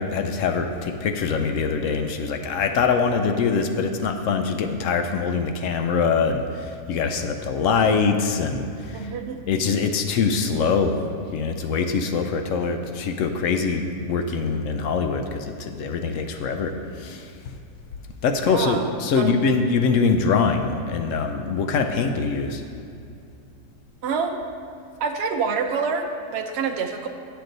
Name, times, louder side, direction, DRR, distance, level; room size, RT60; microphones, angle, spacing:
voice 1, 0.0-9.1 9.5-11.0 11.3-16.7 17.0-17.3 18.2-22.6, left 5 dB, 70° left, 6 dB, 0.8 m, -23 dB
voice 2, 8.9-9.4 18.4-18.9 19.2-19.4 24.0-24.4 25.0-27.1, right 5 dB, 65° right, 4 dB, 0.6 m, -27 dB
9.4 x 6.8 x 3.9 m, 2.6 s
omnidirectional pair, 1.7 m